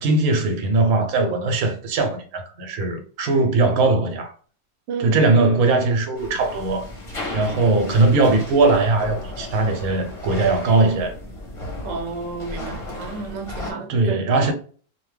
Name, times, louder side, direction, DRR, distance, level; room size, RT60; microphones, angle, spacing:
voice 1, 0.0-4.3 5.0-6.9 7.3-11.1 13.9-14.5, right 3 dB, 85° right, 1.1 m, -20 dB
voice 2, 4.9-5.2 11.8-14.3, right 4 dB, 65° right, 0.9 m, -31 dB
sound 1, 6.1-13.7, left 2 dB, 30° left, 0.6 m, -34 dB
2.9 x 2.1 x 3.1 m
omnidirectional pair, 1.5 m